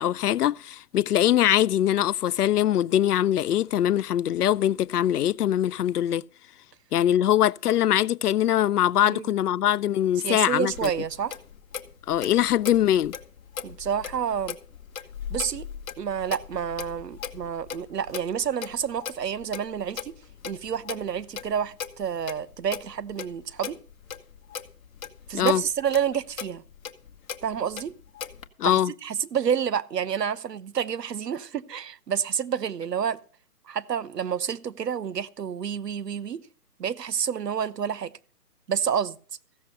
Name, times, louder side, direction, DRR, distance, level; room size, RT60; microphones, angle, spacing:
voice 1, 0.0-6.2 6.9-10.9 12.1-13.1 25.3-25.6 28.6-28.9, left 11 dB, 75° left, 0.5 m, -22 dB
voice 2, 10.2-11.4 13.6-14.6 15.3-15.7 16.0-20.1 20.4-23.8 25.3-26.6 27.4-27.9 28.6-33.2 33.7-36.4 36.8-38.1 38.7-39.2, right 8 dB, 90° right, 0.9 m, -29 dB
Clock, 10.7-28.5, left 7 dB, 60° left, 1.2 m, -39 dB
15.0 x 7.0 x 6.5 m
hypercardioid pair, 165°, 47 cm